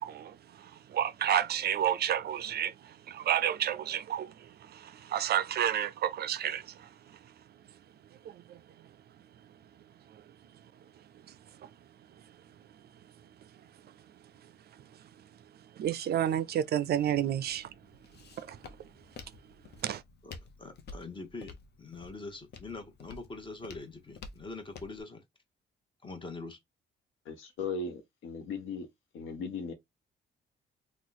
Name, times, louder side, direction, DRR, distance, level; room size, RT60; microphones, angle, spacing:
voice 1, 0.0-6.9 8.2-8.6 11.6-11.7 15.8-17.7 18.4-18.6 19.8-20.0, right 10 dB, 55° right, 0.4 m, -31 dB
Walk footsteps, 16.9-25.0, left 4 dB, 55° left, 0.7 m, -51 dB
voice 2, 20.6-25.2 26.0-26.6, left 3 dB, 25° left, 1.1 m, -43 dB
voice 3, 27.3-28.9 29.1-29.7, left 4 dB, 80° left, 1.0 m, -37 dB
2.9 x 2.3 x 3.9 m
cardioid pair, 90°, 20 cm